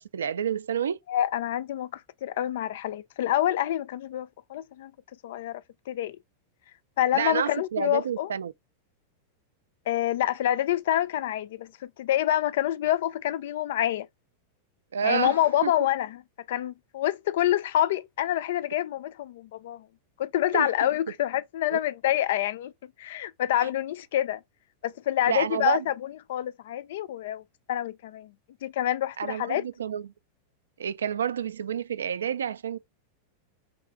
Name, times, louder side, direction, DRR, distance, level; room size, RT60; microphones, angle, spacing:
voice 1, 0.1-1.0 7.1-8.5 14.9-15.4 15.6-15.7 20.5-20.9 21.7-21.8 25.3-25.8 29.2-30.1 30.8-32.8, right 8 dB, 65° right, 0.3 m, -29 dB
voice 2, 1.1-4.9 5.2-6.2 7.0-8.3 9.9-14.1 15.0-16.2 16.5-19.8 20.2-22.7 23.0-24.4 24.8-25.9 26.3-27.4 27.7-28.3 28.6-29.6, left 12 dB, 55° left, 0.3 m, -27 dB
3.7 x 3.2 x 4.4 m
figure-of-eight pair, 90°, 0 cm